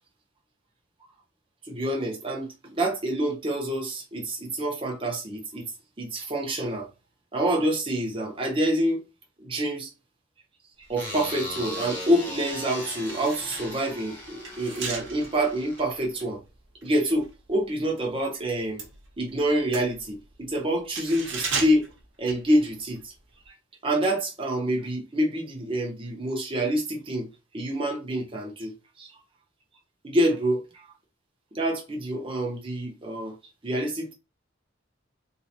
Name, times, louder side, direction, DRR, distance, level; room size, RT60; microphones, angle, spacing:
voice 1, 1.7-5.7 6.0-6.9 7.3-9.0 9.4-9.9 10.9-16.4 16.8-18.9 19.2-21.8 22.2-23.1 23.8-27.3 27.5-28.7 29.0-29.1 30.0-30.6 31.5-33.3 33.6-34.1, right 1 dB, 30° right, 0.8 m, -27 dB
sound 1, 10.9-11.0 11.5-18.1 18.4-23.0 23.3-23.5, right 4 dB, 70° right, 0.9 m, -38 dB
sound 2, 11.0-16.3, equal, 10° left, 0.9 m, -38 dB
3.2 x 2.2 x 2.9 m
head